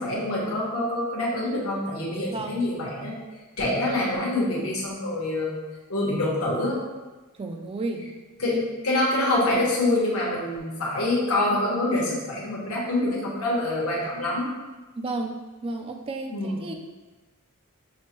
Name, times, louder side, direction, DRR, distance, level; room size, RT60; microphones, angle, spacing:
voice 1, 0.0-3.2 3.6-5.5 5.9-6.8 8.4-8.5 8.8-14.5 16.3-16.6, left 1 dB, 80° left, -4 dB, 1.1 m, -26 dB
voice 2, 7.4-8.1 8.4-8.6 15.0-16.7, right 2 dB, 25° right, 4 dB, 0.3 m, -32 dB
6.2 x 2.2 x 2.9 m, 1.2 s
head